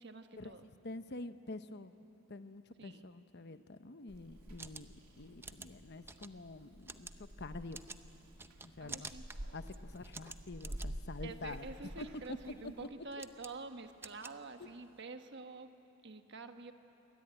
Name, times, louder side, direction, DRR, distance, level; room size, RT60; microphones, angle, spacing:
voice 1, 0.0-0.7 2.8-3.0 8.8-9.3 11.2-15.7 16.0-16.7, right 3 dB, 50° right, 7 dB, 1.3 m, -48 dB
voice 2, 0.8-1.9 2.3-4.9 5.2-7.1 7.4-7.8 8.6-9.1 9.5-11.7 12.0-12.1 14.6-14.7, left 2 dB, 50° left, 10 dB, 0.9 m, -47 dB
Purr / Meow, 4.1-12.9, equal, 90° right, 2.6 m, -49 dB
sound 1, 4.3-15.0, right 3 dB, 10° right, 0.6 m, -52 dB
28.0 x 22.5 x 9.1 m, 2.9 s
head